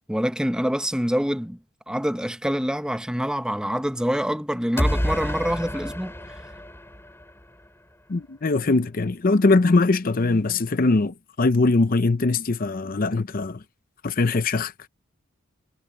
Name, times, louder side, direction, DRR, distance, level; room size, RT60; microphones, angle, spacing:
voice 1, 0.1-1.6 1.9-6.4, equal, 5° right, 0.9 m, -26 dB
sound 1, 4.8-7.7, equal, 10° left, 2.8 m, -28 dB
voice 2, 8.1-13.6 14.0-14.7, left 3 dB, 40° left, 0.6 m, -21 dB
head